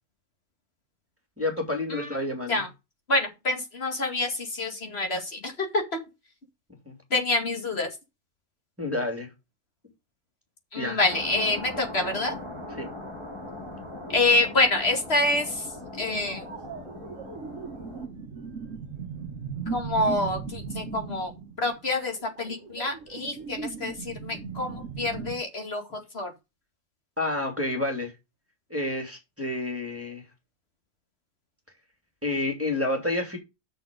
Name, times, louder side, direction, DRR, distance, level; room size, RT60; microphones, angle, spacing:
voice 1, 1.4-2.6 6.8-7.0 8.8-9.3 10.8-11.0 12.8-12.9 27.2-28.1 28.7-30.2 32.2-33.4, left 2 dB, 10° right, 2.8 m, -29 dB
voice 2, 3.1-6.0 7.1-7.9 10.7-12.4 14.1-15.7 15.9-16.5 19.7-21.3 21.6-26.3, left 2 dB, 50° left, 2.6 m, -27 dB
sound 1, 11.1-18.1, left 1 dB, 20° left, 5.4 m, -40 dB
sound 2, 16.3-25.3, right 5 dB, 75° right, 1.5 m, -38 dB
7.9 x 6.6 x 5.2 m
omnidirectional pair, 1.3 m